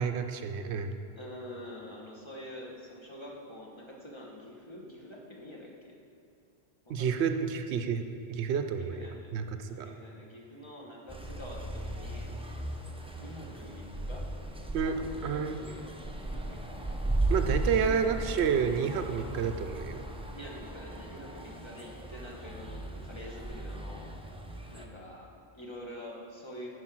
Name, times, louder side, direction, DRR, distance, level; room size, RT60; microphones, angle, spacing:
voice 1, 0.0-1.0 6.9-8.0 8.3-9.9 14.7-14.9 15.2-15.6 17.3-20.0, right 7 dB, 80° right, 7 dB, 0.8 m, -30 dB
voice 2, 1.1-5.9 6.9-7.1 8.7-12.3 13.2-14.3 14.8-15.8 16.2-16.8 17.9-18.1 20.3-24.1 24.7-26.7, left 1 dB, 25° left, -3 dB, 1.2 m, -46 dB
sound 1, 11.1-24.9, right 1 dB, 10° right, 0.3 m, -36 dB
9.7 x 5.0 x 6.1 m, 2.4 s
omnidirectional pair, 1.1 m